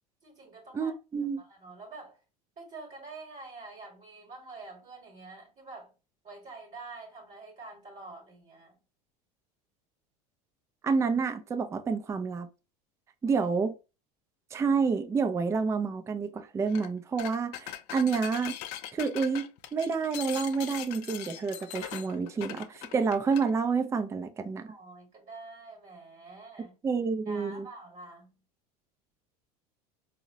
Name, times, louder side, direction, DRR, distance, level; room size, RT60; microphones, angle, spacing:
voice 1, 0.2-0.9 1.4-2.2 2.6-5.9 6.2-8.8 13.2-13.5 24.7-26.7 27.3-28.3, right 3 dB, 35° right, 1.1 m, -47 dB
voice 2, 0.7-1.4 10.8-12.5 13.2-13.7 14.5-18.6 18.9-24.7 26.8-27.7, right 5 dB, 15° right, 0.3 m, -29 dB
sound 1, 16.7-16.9 17.2-23.5, left 12 dB, 55° left, 0.4 m, -41 dB
3.6 x 2.1 x 2.6 m
hypercardioid pair, 85°, 20 cm